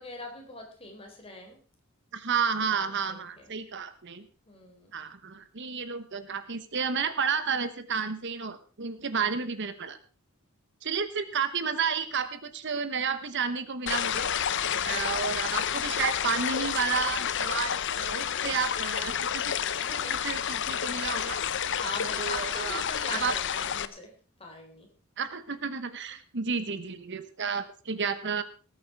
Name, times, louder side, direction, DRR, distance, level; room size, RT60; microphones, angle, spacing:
voice 1, 0.0-1.6 2.7-3.5 4.5-4.9 14.7-15.4 19.8-20.4 21.3-24.1 24.4-24.9, left 2 dB, 25° left, 2 dB, 3.9 m, -42 dB
voice 2, 2.1-4.3 4.9-10.0 10.8-14.3 14.8-19.9 20.2-21.4 22.2-22.8 23.1-23.3 25.2-28.4, right 6 dB, 55° right, 12 dB, 1.1 m, -31 dB
sound 1, 13.9-23.9, left 8 dB, 55° left, 0.7 m, -30 dB
19.0 x 8.8 x 4.7 m, 0.38 s
head